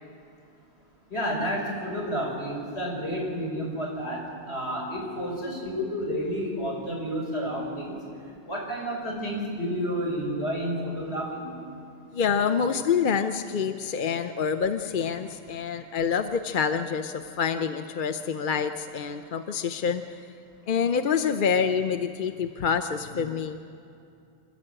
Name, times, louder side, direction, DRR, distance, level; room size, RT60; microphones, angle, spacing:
voice 1, 1.1-8.0 8.4-11.5, equal, 65° left, -1 dB, 5.9 m, -30 dB
voice 2, 12.1-20.2 20.7-23.6, left 6 dB, 50° left, 8 dB, 0.8 m, -27 dB
27.0 x 13.5 x 8.8 m, 2.6 s
omnidirectional pair, 1.2 m